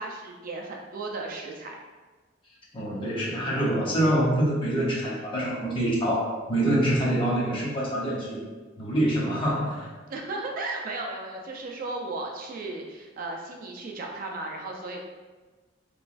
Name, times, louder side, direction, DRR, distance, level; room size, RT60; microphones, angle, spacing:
voice 1, 0.0-1.8 10.1-15.0, right 2 dB, 45° right, 0 dB, 0.3 m, -35 dB
voice 2, 2.7-8.5 8.8-9.9, right 1 dB, 25° left, -5 dB, 0.7 m, -25 dB
3.0 x 2.2 x 2.4 m, 1.3 s
head